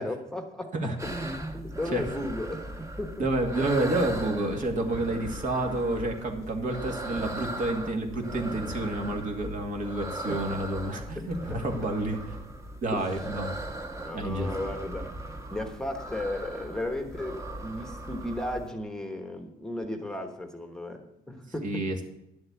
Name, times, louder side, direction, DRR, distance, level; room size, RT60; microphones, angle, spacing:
voice 1, 0.0-3.3 10.3-10.4 11.2-11.3 11.5-11.6 12.9-13.5 13.9-21.8, left 1 dB, 5° left, 5 dB, 1.1 m, -35 dB
sound 1, 1.0-18.7, right 1 dB, 15° right, 1.3 m, -38 dB
voice 2, 3.2-12.2 12.8-13.6 14.1-14.5 21.6-22.0, right 2 dB, 50° right, 3 dB, 2.3 m, -29 dB
11.0 x 7.8 x 7.0 m, 0.84 s
cardioid pair, 110°, 17 cm